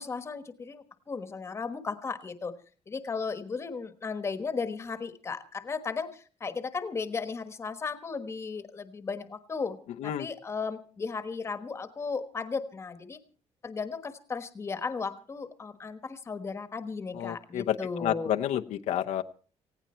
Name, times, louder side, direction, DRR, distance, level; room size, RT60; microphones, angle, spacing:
voice 1, 0.0-2.6 2.9-9.8 10.0-13.2 13.6-18.3, left 5 dB, 20° left, 10 dB, 1.3 m, -35 dB
voice 2, 17.2-19.2, left 11 dB, 75° left, 6 dB, 0.9 m, -30 dB
18.5 x 16.5 x 4.4 m, 0.40 s
cardioid pair, 180°, 12 cm